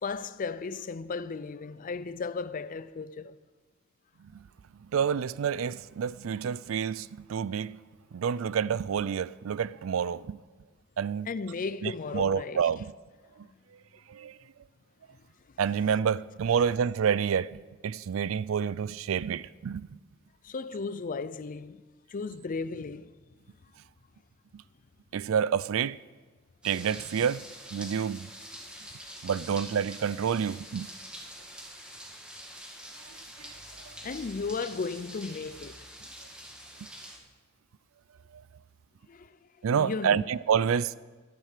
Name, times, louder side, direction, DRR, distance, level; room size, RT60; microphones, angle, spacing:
voice 1, 0.0-3.4 11.3-12.7 20.4-21.8 22.1-23.1 34.0-35.8 39.1-39.3 39.7-40.3, left 4 dB, 40° left, 0.5 m, -35 dB
voice 2, 4.9-7.8 8.1-10.4 11.0-11.3 11.8-12.9 14.1-14.4 15.6-19.9 25.1-26.0 26.6-27.4 27.7-28.3 29.2-30.9 39.6-40.9, right 7 dB, 80° right, 0.4 m, -28 dB
sound 1, 26.6-37.2, equal, 5° right, 1.8 m, -46 dB
12.0 x 11.0 x 6.6 m
head